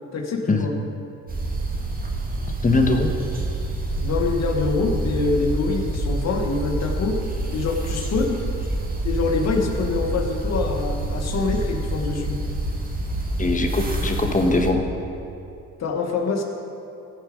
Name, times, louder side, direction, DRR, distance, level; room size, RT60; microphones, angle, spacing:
voice 1, 0.1-0.7 4.0-7.2 7.5-8.4 9.0-12.4 15.8-16.4, left 4 dB, 60° left, 2 dB, 1.5 m, -25 dB
sound 1, 1.3-14.7, right 2 dB, 30° right, 1.8 m, -27 dB
voice 2, 2.6-3.1 13.4-14.8, left 3 dB, 25° left, 4 dB, 1.3 m, -21 dB
15.0 x 7.0 x 5.2 m, 2.8 s
cardioid pair, 90°, 30 cm